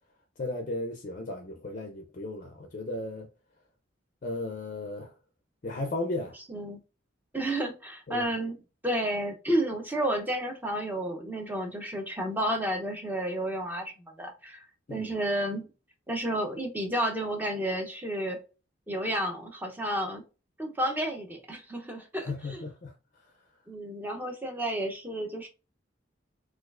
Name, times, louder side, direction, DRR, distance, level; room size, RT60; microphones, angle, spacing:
voice 1, 0.4-3.3 4.2-5.1 5.6-6.4 8.1-8.3 14.9-15.1 22.2-23.3, left 2 dB, 40° left, 0.4 m, -35 dB
voice 2, 6.5-6.8 7.3-8.5 8.8-14.6 14.9-15.7 16.1-18.4 18.9-20.2 20.6-22.6 23.7-25.5, right 1 dB, 10° right, 0.7 m, -31 dB
4.2 x 2.4 x 2.4 m
head